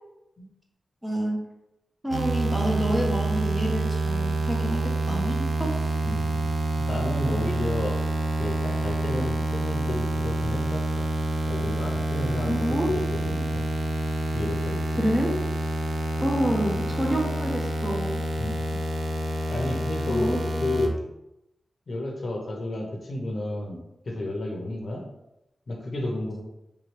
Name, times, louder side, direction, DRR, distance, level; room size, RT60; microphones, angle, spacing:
voice 1, 1.0-1.4 2.0-4.8 5.1-5.8 12.5-12.9 15.0-15.4 16.2-18.2 20.1-20.7, equal, 5° right, -1 dB, 0.5 m, -28 dB
sound 1, 2.1-20.9, right 2 dB, 70° right, 0.4 m, -27 dB
voice 2, 6.0-8.0 8.4-11.1 11.5-13.6 14.3-15.0 18.4-18.6 19.5-21.0 21.9-25.0 25.7-26.4, left 1 dB, 45° left, 0 dB, 0.7 m, -32 dB
3.3 x 3.1 x 3.2 m, 0.88 s
wide cardioid pair, 180°, 0 cm